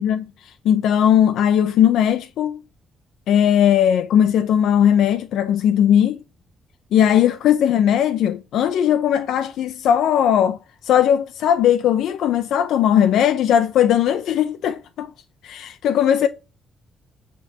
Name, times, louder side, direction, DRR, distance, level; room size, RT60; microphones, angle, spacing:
voice 1, 0.0-2.6 3.3-6.2 6.9-10.6 10.8-15.1 15.4-16.3, left 9 dB, 80° left, 0.6 m, -18 dB
9.2 x 3.8 x 7.0 m
cardioid pair, 160°, 0 cm